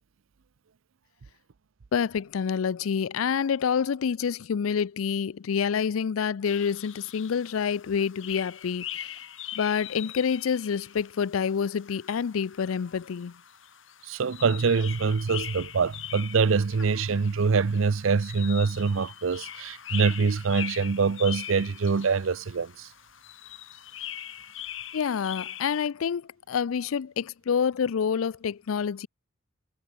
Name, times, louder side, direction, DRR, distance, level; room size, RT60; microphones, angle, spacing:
voice 1, 1.9-9.1 9.5-13.3 24.9-29.1, left 7 dB, 85° left, 0.4 m, -27 dB
sound 1, 6.4-25.8, left 11 dB, 70° left, 4.4 m, -42 dB
voice 2, 14.1-22.9, right 5 dB, 75° right, 0.6 m, -24 dB
head